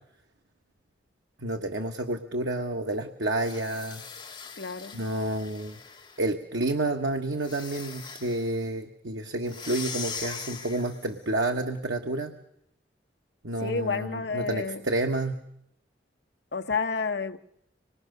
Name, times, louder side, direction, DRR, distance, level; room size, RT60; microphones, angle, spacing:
voice 1, 1.4-4.0 4.9-5.8 6.2-12.3 13.4-14.1 14.3-15.4, right 2 dB, 90° right, 1.4 m, -29 dB
sound 1, 3.3-6.3 7.4-8.5 9.4-11.2, left 6 dB, 25° left, 2.2 m, -41 dB
voice 2, 4.6-5.0 13.6-14.8 16.5-17.4, left 4 dB, 70° left, 1.1 m, -30 dB
25.0 x 21.5 x 6.7 m
head